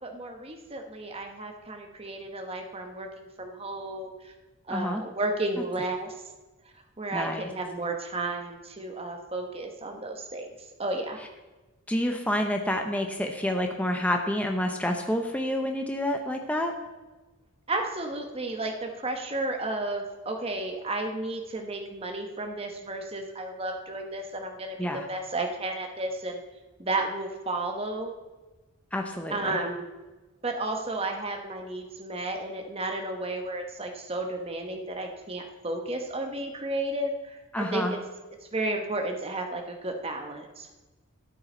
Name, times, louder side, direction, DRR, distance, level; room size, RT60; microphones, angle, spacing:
voice 1, 0.0-4.3 4.7-6.1 7.0-10.5 10.8-11.2 17.7-26.4 26.8-28.1 29.3-29.9 30.4-38.0 38.5-40.7, right 2 dB, 25° right, 3 dB, 1.1 m, -33 dB
voice 2, 4.7-5.0 7.1-7.5 11.9-16.7 24.8-25.0 28.9-29.6 37.5-37.9, left 1 dB, 5° left, 3 dB, 0.8 m, -28 dB
13.0 x 8.7 x 4.4 m, 1.2 s
head